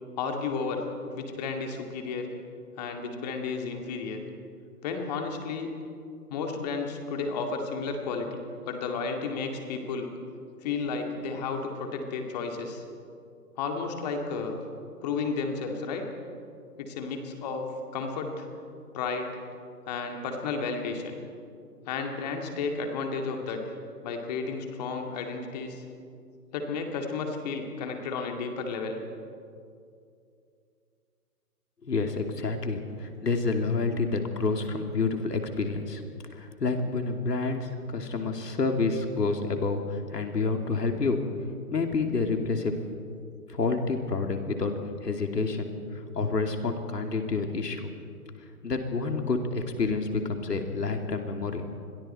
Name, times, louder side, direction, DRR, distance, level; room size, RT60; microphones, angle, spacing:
voice 1, 0.2-0.9 1.1-2.3 2.8-4.2 4.8-5.7 6.3-8.4 8.7-10.1 10.6-12.8 13.6-14.6 15.0-16.0 16.8-17.6 17.9-18.5 18.9-19.4 19.9-21.2 21.9-23.7 24.0-25.8 26.5-29.0, left 4 dB, 25° left, 3 dB, 2.2 m, -32 dB
voice 2, 31.8-36.0 36.4-41.2 41.7-42.7 43.5-44.7 45.0-45.7 46.1-47.9 48.6-51.6, left 4 dB, 80° left, 4 dB, 2.9 m, -28 dB
27.5 x 22.0 x 4.4 m, 2.5 s
hypercardioid pair, 150°, 47 cm